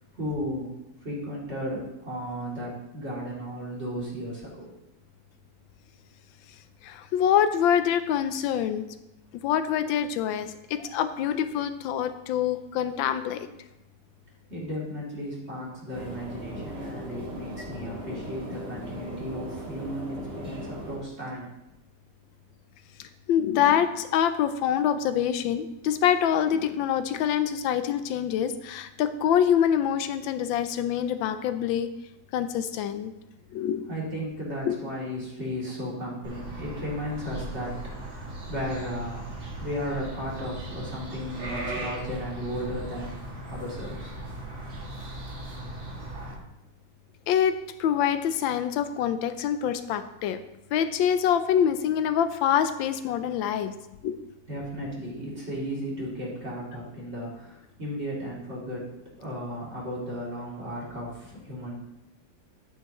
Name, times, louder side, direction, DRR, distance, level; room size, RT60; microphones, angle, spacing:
voice 1, 0.1-0.7 1.0-4.7 14.5-21.5 33.9-37.7 38.0-43.2 43.5-44.2 54.5-58.8 59.2-61.8, equal, 35° right, -6 dB, 3.1 m, -35 dB
voice 2, 6.8-8.8 9.3-13.4 23.0-31.9 32.3-33.1 33.5-33.9 34.6-34.8 47.3-50.4 50.7-53.7 54.0-54.2, left 9 dB, 85° left, 10 dB, 1.4 m, -25 dB
sound 1, 15.9-21.0, equal, 55° right, 2.8 m, -38 dB
sound 2, 36.2-46.3, right 1 dB, 90° right, 3.0 m, -38 dB
10.0 x 8.9 x 3.0 m, 0.92 s
omnidirectional pair, 2.1 m